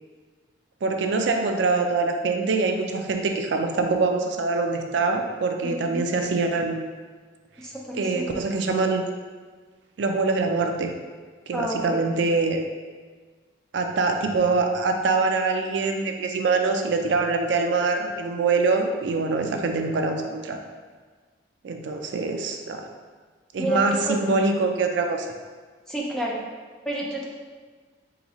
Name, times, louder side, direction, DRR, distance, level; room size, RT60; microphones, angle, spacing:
voice 1, 0.8-6.8 7.9-9.1 10.0-10.9 11.5-12.6 13.7-20.6 21.6-22.9 23.5-25.3, right 3 dB, 70° right, 4 dB, 0.4 m, -24 dB
voice 2, 5.6-6.1 7.6-8.4 11.5-12.1 23.6-24.2 25.9-26.4 26.8-27.2, right 1 dB, 5° left, -3 dB, 0.5 m, -30 dB
3.9 x 3.8 x 3.0 m, 1.5 s
head